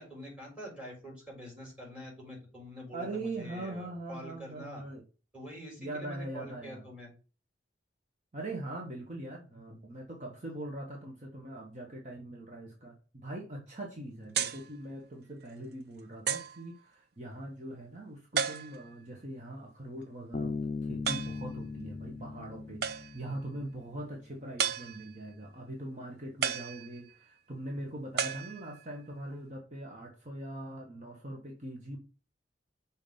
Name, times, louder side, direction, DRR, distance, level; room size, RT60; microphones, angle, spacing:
voice 1, 0.0-4.8 5.3-7.1, equal, 5° right, -2 dB, 4.2 m, -46 dB
voice 2, 2.9-5.0 5.8-6.8 8.3-32.0, right 1 dB, 45° right, 0 dB, 1.2 m, -42 dB
sound 1, 14.3-14.7 15.4-15.5 16.3-16.6 18.4-19.0 21.1-21.5 22.8-23.3 24.6-25.3 26.4-27.3 28.2-29.0, right 7 dB, 65° right, 0.6 m, -34 dB
Bass guitar, 20.3-23.8, left 4 dB, 35° left, 0.4 m, -38 dB
6.0 x 4.1 x 5.4 m, 0.35 s
head